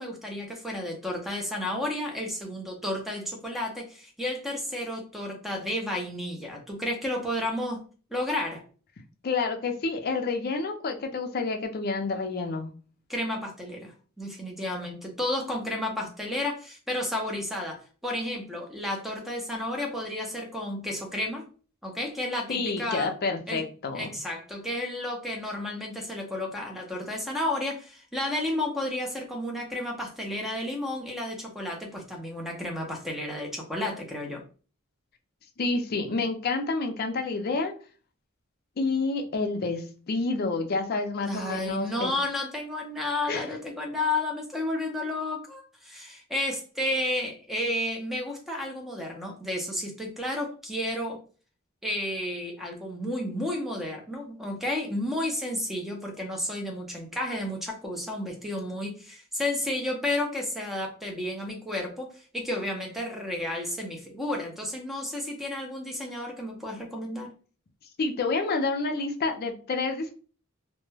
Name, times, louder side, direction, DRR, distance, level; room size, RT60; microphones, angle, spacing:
voice 1, 0.0-7.8 8.1-8.6 13.1-21.5 21.8-23.1 23.5-23.6 23.9-34.4 41.3-51.2 51.8-67.3, left 1 dB, ahead, 0 dB, 0.5 m, -32 dB
voice 2, 9.2-12.7 22.5-24.2 35.6-37.7 38.8-42.1 43.3-43.5 68.0-70.1, left 3 dB, 45° left, 5 dB, 0.4 m, -29 dB
2.2 x 2.1 x 3.2 m, 0.38 s
head